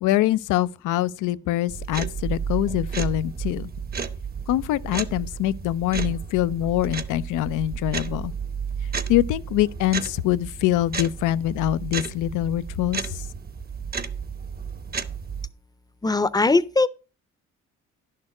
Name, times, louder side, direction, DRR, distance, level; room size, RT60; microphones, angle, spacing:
voice 1, 0.0-3.7 4.5-8.3 9.1-13.2, left 14 dB, 90° left, 0.5 m, -24 dB
sound 1, 1.7-15.5, right 6 dB, 30° right, 0.8 m, -32 dB
voice 2, 16.0-16.9, left 3 dB, 15° left, 0.6 m, -20 dB
11.0 x 6.6 x 4.8 m
cardioid pair, 90°, 30 cm